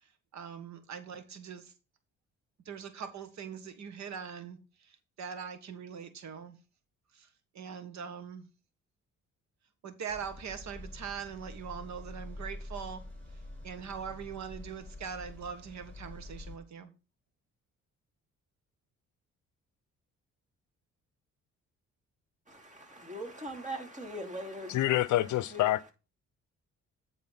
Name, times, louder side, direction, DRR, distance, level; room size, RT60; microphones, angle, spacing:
voice 1, 0.0-1.7 2.6-6.6 7.1-7.3 7.5-8.5 9.8-13.0 13.6-16.9, right 7 dB, 65° right, 1.4 m, -42 dB
sound 1, 10.1-16.6, left 1 dB, 5° left, 4.2 m, -46 dB
voice 2, 22.5-25.7, right 1 dB, 25° right, 2.8 m, -42 dB
voice 3, 24.7-25.9, left 15 dB, 75° left, 0.6 m, -27 dB
9.7 x 3.9 x 5.7 m
cardioid pair, 90°, 30 cm